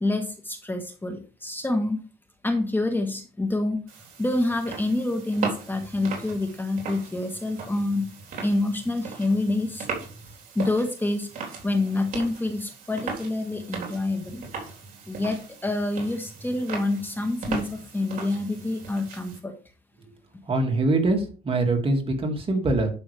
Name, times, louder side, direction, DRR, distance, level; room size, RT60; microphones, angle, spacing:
voice 1, 0.0-2.0 2.4-3.8 4.2-8.0 8.4-9.9 10.5-11.3 11.6-14.4 15.1-19.5, left 2 dB, 10° left, 5 dB, 1.4 m, -27 dB
sound 1, 3.9-19.4, right 5 dB, 55° right, 3.8 m, -38 dB
voice 2, 20.5-22.9, right 2 dB, 35° right, 3 dB, 2.4 m, -23 dB
11.0 x 6.1 x 3.4 m, 0.36 s
cardioid pair, 110°, 17 cm